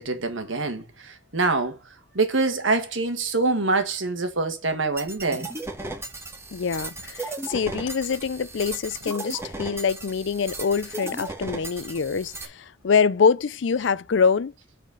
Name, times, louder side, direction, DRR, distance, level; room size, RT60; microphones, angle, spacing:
voice 1, 0.0-1.8 2.1-5.5, right 3 dB, 80° right, 1.6 m, -25 dB
sound 1, 5.0-12.5, right 2 dB, 15° right, 1.4 m, -36 dB
voice 2, 6.5-14.5, left 5 dB, 65° left, 0.5 m, -24 dB
8.2 x 4.3 x 5.2 m
head